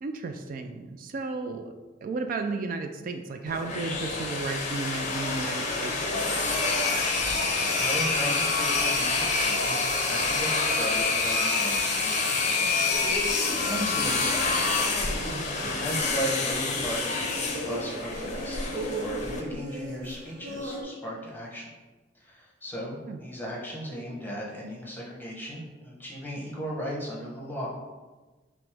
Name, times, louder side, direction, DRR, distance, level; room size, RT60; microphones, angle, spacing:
voice 1, 0.0-1.7 2.0-6.6 15.3-15.8 23.1-23.2, right 3 dB, 50° right, 6 dB, 0.3 m, -34 dB
sound 1, 3.5-19.4, left 3 dB, 40° left, 0.5 m, -27 dB
voice 2, 7.8-13.4 13.7-14.5 15.6-21.7 22.2-27.7, equal, 10° left, -4 dB, 0.9 m, -36 dB
sound 2, 12.9-20.8, equal, 80° right, 0.9 m, -36 dB
5.9 x 2.1 x 3.4 m, 1.2 s
head